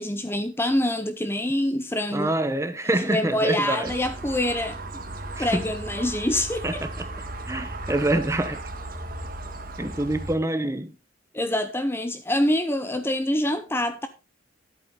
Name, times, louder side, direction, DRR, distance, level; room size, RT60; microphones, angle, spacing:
voice 1, 0.0-2.3 3.1-4.8 5.4-6.8 11.3-14.1, left 1 dB, 10° left, 0.7 m, -25 dB
voice 2, 2.1-3.9 5.3-5.7 6.6-7.0 7.5-8.6 9.8-11.0, right 1 dB, 15° right, 0.9 m, -26 dB
sound 1, 3.8-10.4, right 2 dB, 45° right, 1.7 m, -36 dB
11.0 x 8.6 x 3.7 m
head